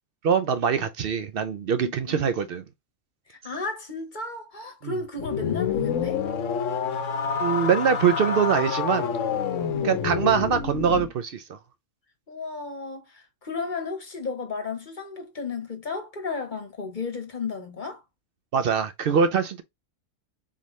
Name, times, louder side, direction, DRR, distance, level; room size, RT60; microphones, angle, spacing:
voice 1, 0.2-2.6 4.8-5.0 7.4-9.1 9.8-11.6 18.5-19.6, right 7 dB, 70° right, 0.5 m, -23 dB
voice 2, 1.8-2.3 3.3-6.2 9.7-9.9 12.3-18.0, left 4 dB, 40° left, 1.0 m, -34 dB
sound 1, 5.2-11.1, left 6 dB, 65° left, 1.0 m, -28 dB
4.1 x 3.6 x 3.0 m
omnidirectional pair, 1.5 m